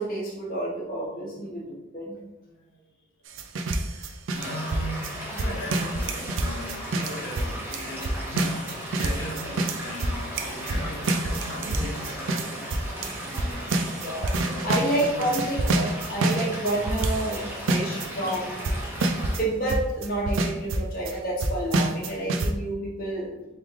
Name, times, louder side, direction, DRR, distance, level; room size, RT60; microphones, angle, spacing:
voice 1, 0.0-1.6 1.9-2.1 14.0-14.2 14.6-17.4 17.7-18.8 19.4-23.5, right 1 dB, 40° left, -6 dB, 1.0 m, -29 dB
voice 2, 2.4-2.8 3.8-13.9 14.4-15.4, equal, 65° left, -3 dB, 1.1 m, -38 dB
sound 1, 3.3-17.4 17.7-18.1 18.3-18.4 18.6-19.4 19.7-21.1 21.4-22.5, right 2 dB, 65° right, 0.4 m, -27 dB
Stream / Liquid, 4.4-19.4, equal, 10° right, 1.0 m, -37 dB
3.4 x 3.2 x 3.5 m, 1.0 s
head